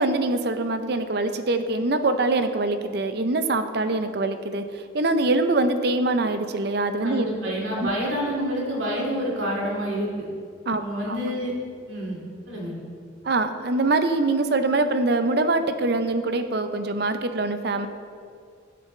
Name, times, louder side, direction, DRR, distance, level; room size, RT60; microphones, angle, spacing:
voice 1, 0.0-4.6 4.9-7.3 7.8-7.9 10.7-11.2 13.2-17.9, right 2 dB, 55° right, 9 dB, 0.6 m, -24 dB
voice 2, 7.0-10.3 10.8-11.5 11.9-12.2 12.5-12.8, equal, 80° right, -3 dB, 2.3 m, -28 dB
15.5 x 6.8 x 3.2 m, 2.3 s
head